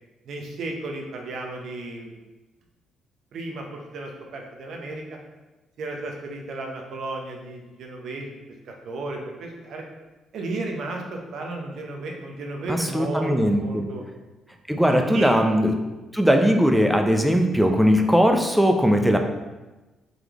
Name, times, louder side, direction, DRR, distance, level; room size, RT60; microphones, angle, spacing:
voice 1, 0.2-2.2 3.3-5.0 5.8-8.3 8.6-9.8 10.3-14.0 14.9-15.5, right 2 dB, 70° right, 1 dB, 0.7 m, -33 dB
voice 2, 12.7-13.9 14.7-15.8 16.1-19.2, equal, 5° right, 4 dB, 0.5 m, -19 dB
3.9 x 3.2 x 2.9 m, 1.1 s
cardioid pair, 90°, 0 cm